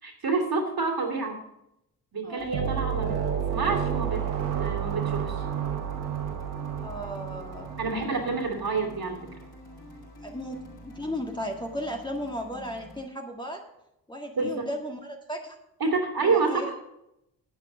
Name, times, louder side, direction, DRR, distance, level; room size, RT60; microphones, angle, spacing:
voice 1, 0.0-1.4 2.1-3.2 3.5-4.2 4.6-5.4 7.8-9.3 14.3-14.7 15.8-16.7, right 4 dB, 45° right, 2 dB, 2.8 m, -28 dB
sound 1, 2.4-13.0, left 2 dB, 45° left, 5.2 m, -47 dB
sound 2, 2.5-9.0, right 8 dB, 80° right, 1.4 m, -31 dB
voice 2, 6.8-7.7 10.2-13.6 14.1-15.6 16.2-16.7, equal, 10° left, 1 dB, 1.8 m, -35 dB
9.1 x 8.3 x 6.2 m, 0.83 s
hypercardioid pair, 40°, 49 cm